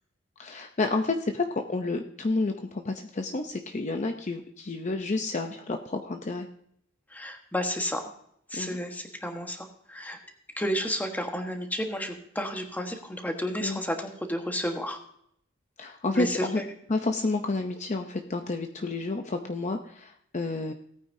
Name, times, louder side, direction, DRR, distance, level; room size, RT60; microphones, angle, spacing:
voice 1, 0.4-6.5 8.5-8.8 13.6-13.8 15.8-16.6 16.9-20.7, left 3 dB, 35° left, 5 dB, 0.7 m, -30 dB
voice 2, 7.1-8.1 8.5-10.2 10.6-15.0 16.1-16.6, equal, 10° left, 4 dB, 1.3 m, -31 dB
17.5 x 9.2 x 2.7 m, 0.69 s
head